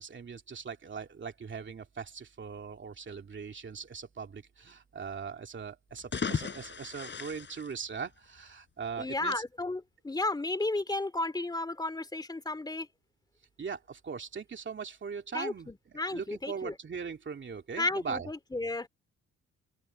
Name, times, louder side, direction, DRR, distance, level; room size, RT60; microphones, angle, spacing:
voice 1, 0.0-9.4 13.6-18.3, right 6 dB, 40° right, 2.7 m, -40 dB
sound 1, 5.9-8.5, left 5 dB, 35° left, 5.7 m, -37 dB
voice 2, 9.0-12.9 15.3-16.7 17.8-18.9, left 2 dB, 15° left, 2.5 m, -33 dB
cardioid pair, 90°, 30 cm